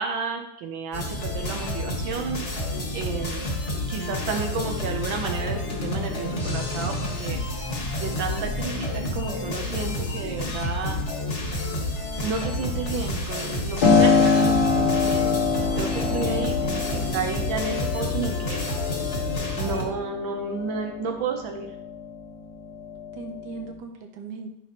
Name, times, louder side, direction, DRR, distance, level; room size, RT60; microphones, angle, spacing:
voice 1, 0.0-2.4 2.9-3.5 3.9-7.4 8.0-11.0 12.2-18.7 19.6-21.7, right 5 dB, 80° right, 3 dB, 1.5 m, -32 dB
sound 1, 0.9-19.9, left 1 dB, 40° left, 1.5 m, -29 dB
Piano, 13.8-22.3 22.7-23.7, left 5 dB, 75° left, 2.1 m, -24 dB
voice 2, 16.0-17.1 23.2-24.5, right 4 dB, 65° right, 3 dB, 1.5 m, -39 dB
11.0 x 5.7 x 2.9 m, 0.81 s
omnidirectional pair, 2.1 m